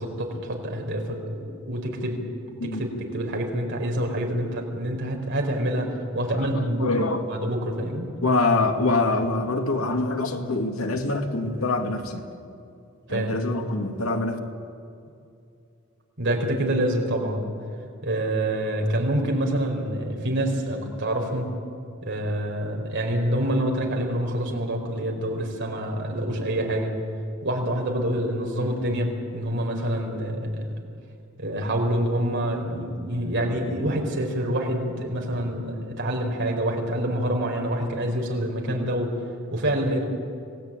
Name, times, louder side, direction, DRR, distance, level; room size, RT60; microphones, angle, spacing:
voice 1, 0.0-2.2 2.6-8.1 13.1-13.4 16.2-17.5 18.0-21.5 22.0-26.9 27.4-30.7 31.4-39.2 39.5-40.0, right 1 dB, 60° right, 2 dB, 4.6 m, -26 dB
voice 2, 6.3-7.2 8.2-12.2 13.1-14.4, left 2 dB, 90° left, 4 dB, 2.3 m, -25 dB
26.0 x 18.0 x 9.0 m, 2.5 s
head